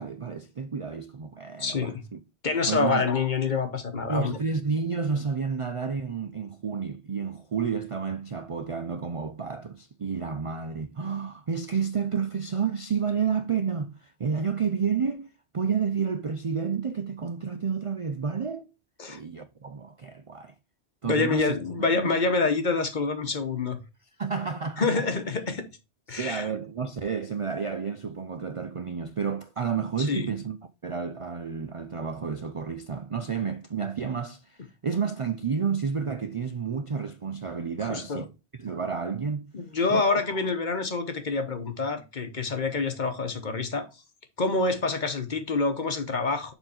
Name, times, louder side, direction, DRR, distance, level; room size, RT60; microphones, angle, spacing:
voice 1, 0.0-2.2 2.7-3.1 4.1-18.7 19.1-20.5 21.0-22.2 24.2-25.0 26.1-30.6 30.8-38.3 38.6-39.5 39.9-40.2, right 6 dB, 45° right, 0.4 m, -30 dB
voice 2, 1.6-2.0 2.4-4.4 19.0-19.2 21.0-23.8 24.8-25.6 26.1-26.5 30.0-30.3 37.9-38.2 39.5-43.9 44.4-46.5, left 4 dB, 45° left, 1.1 m, -27 dB
7.0 x 3.9 x 4.3 m
omnidirectional pair, 1.1 m